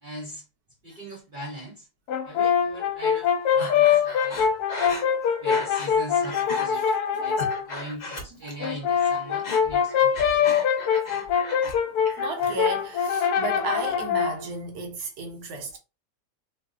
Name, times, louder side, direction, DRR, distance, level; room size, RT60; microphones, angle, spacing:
voice 1, 0.0-0.4 0.8-1.9 2.2-3.3 3.5-4.4 5.4-6.9 7.2-7.4 7.6-10.6, equal, 55° right, 0.5 m, -40 dB
Brass instrument, 2.1-7.7 8.6-14.4, left 7 dB, 75° left, 1.1 m, -24 dB
Breathing, 3.6-6.0 6.2-6.7 7.1-8.7 8.9-11.8 12.1-12.7, left 2 dB, 50° left, 0.5 m, -36 dB
voice 2, 6.8-7.1 8.3-8.6 11.9-15.8, right 3 dB, 70° right, 1.2 m, -34 dB
3.0 x 2.0 x 3.5 m
omnidirectional pair, 1.8 m